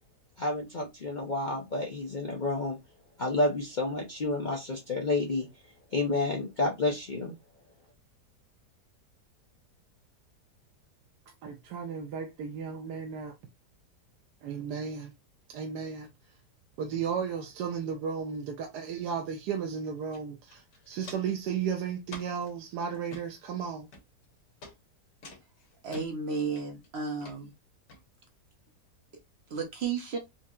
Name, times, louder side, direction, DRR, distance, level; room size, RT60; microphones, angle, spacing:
voice 1, 0.4-2.8 3.2-5.5 5.9-7.3, left 2 dB, 65° left, 0.4 m, -30 dB
voice 2, 11.4-13.3 14.4-15.1 15.5-16.1 16.8-23.9, right 7 dB, 80° right, 1.2 m, -34 dB
Walk footsteps, 20.1-20.2 20.5-21.4 22.1-22.5 22.9-23.2 23.9-24.3 24.6-24.7 25.2-26.1 26.6-26.9 27.2-27.4 27.9-28.0, left 2 dB, 85° left, 1.7 m, -47 dB
voice 3, 25.8-27.5 29.5-30.2, right 5 dB, 60° right, 0.7 m, -33 dB
4.4 x 2.8 x 2.4 m
omnidirectional pair, 1.8 m